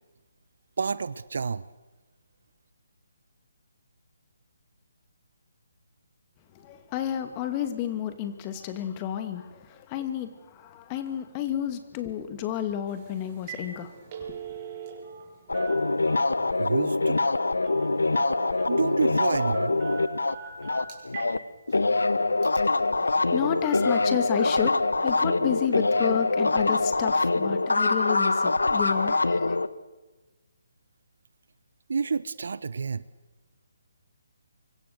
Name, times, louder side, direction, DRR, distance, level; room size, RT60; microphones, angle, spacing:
voice 1, 0.8-1.6 16.6-17.2 18.7-19.8 31.9-33.0, right 5 dB, 60° right, 17 dB, 0.8 m, -29 dB
voice 2, 6.6-9.6 9.9-10.3 10.6-13.9 14.3-14.4 23.0-24.7 25.0-29.6, left 10 dB, 25° left, 8 dB, 2.6 m, -31 dB
Telephone, 12.9-13.0 13.3-13.7 14.0-15.2 15.5-16.5 17.6-17.9 18.1-18.8 19.4-21.3 21.7-21.8 22.4-22.6, right 6 dB, 30° right, 6.9 m, -38 dB
sound 1, 15.5-21.4 21.7-29.7, left 3 dB, 80° left, 1.1 m, -24 dB
25.5 x 24.0 x 6.9 m, 1.2 s
figure-of-eight pair, 145°, 0 cm